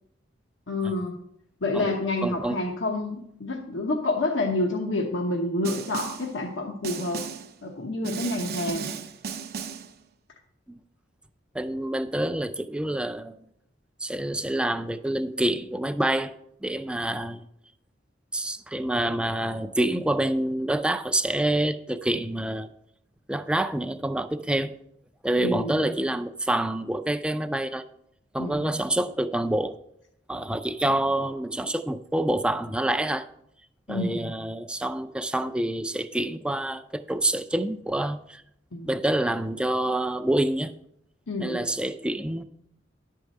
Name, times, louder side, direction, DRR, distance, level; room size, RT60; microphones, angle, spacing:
voice 1, 0.7-1.2 1.6-7.2 7.6-9.0 25.4-25.9 28.4-28.8 33.9-34.4 38.7-38.9 41.3-41.6, left 2 dB, 75° left, 0.9 m, -28 dB
voice 2, 2.2-2.6 10.7-10.8 11.5-13.4 14.0-16.3 16.6-17.5 18.3-22.7 23.3-24.8 25.2-27.8 28.3-29.8 30.3-33.3 33.9-38.4 38.8-40.7 41.4-42.4, right 1 dB, 5° right, 0.4 m, -27 dB
Snare drum, 5.6-6.3 6.8-7.5 8.0-9.9, right 5 dB, 55° right, 0.7 m, -35 dB
11.0 x 4.7 x 6.5 m
head